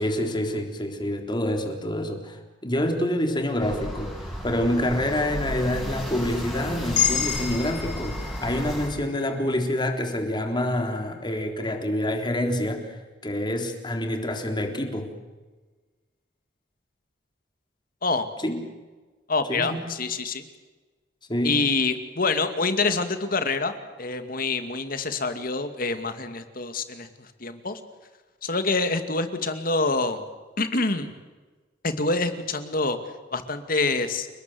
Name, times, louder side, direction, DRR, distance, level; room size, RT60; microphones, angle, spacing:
voice 1, 0.0-4.2 4.4-15.1 18.4-18.6 19.5-19.9 21.3-21.6, left 1 dB, 25° left, 4 dB, 3.8 m, -27 dB
sound 1, 3.6-8.9, equal, ahead, 7.3 m, -34 dB
sound 2, 6.9-11.2, left 9 dB, 85° left, 7.2 m, -31 dB
voice 2, 19.3-20.5 21.4-27.8 28.4-30.2 30.6-31.1 31.8-33.0 33.3-34.3, left 3 dB, 50° left, 9 dB, 2.5 m, -26 dB
30.0 x 20.0 x 7.9 m, 1.3 s
head